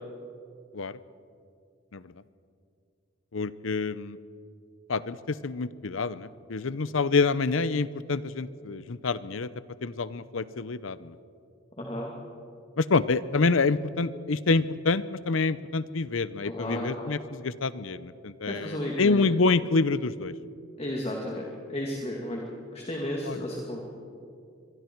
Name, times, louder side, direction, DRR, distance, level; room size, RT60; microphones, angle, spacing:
voice 1, 3.3-4.2 4.9-9.5 9.8-11.2 12.8-20.3 23.3-23.4, left 3 dB, 75° left, 16 dB, 0.7 m, -27 dB
voice 2, 11.8-12.1 16.4-17.1 18.4-19.2 20.8-22.5 22.7-23.8, left 1 dB, 30° left, -1 dB, 2.3 m, -33 dB
25.0 x 22.5 x 4.6 m, 2.4 s
head